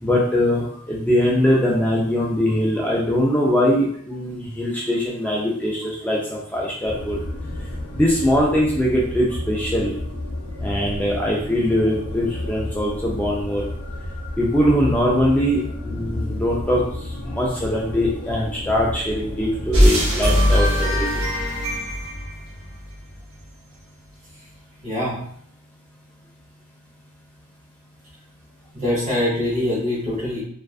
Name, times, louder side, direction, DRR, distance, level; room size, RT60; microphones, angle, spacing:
voice 1, 0.0-7.2 7.9-9.9 10.6-13.7 14.4-16.8 17.2-21.1, equal, 10° left, -4 dB, 0.3 m, -21 dB
sound 1, 6.8-20.0, left 1 dB, 85° left, 0.5 m, -31 dB
sound 2, 19.7-23.2, equal, 80° right, 0.9 m, -20 dB
voice 2, 24.8-25.1 28.7-30.4, left 1 dB, 30° right, -10 dB, 1.1 m, -23 dB
2.4 x 2.2 x 2.3 m, 0.65 s
head